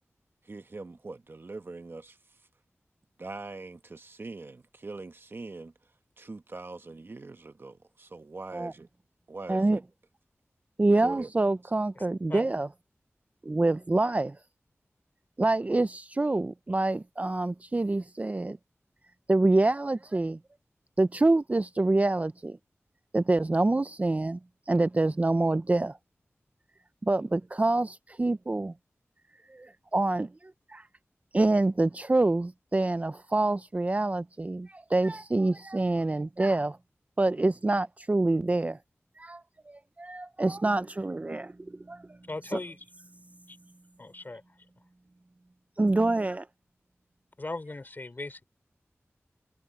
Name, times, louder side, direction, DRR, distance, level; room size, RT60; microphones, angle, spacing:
voice 1, 0.4-2.4 3.2-5.7 6.2-8.9 9.3-9.8 11.0-11.3, right 3 dB, 50° right, 1.1 m, -42 dB
voice 2, 9.5-9.8 10.8-12.7 13.4-14.4 15.4-18.6 19.3-20.4 21.0-22.6 23.1-24.4 24.7-26.0 27.0-28.7 29.5-30.9 31.3-36.8 37.2-38.8 39.2-42.2 45.8-46.5, right 2 dB, 30° right, 0.5 m, -26 dB
voice 3, 42.3-42.8 43.5-43.6 44.0-44.4 47.4-48.4, left 2 dB, 40° left, 4.3 m, -37 dB
wide cardioid pair, 85°, 5 cm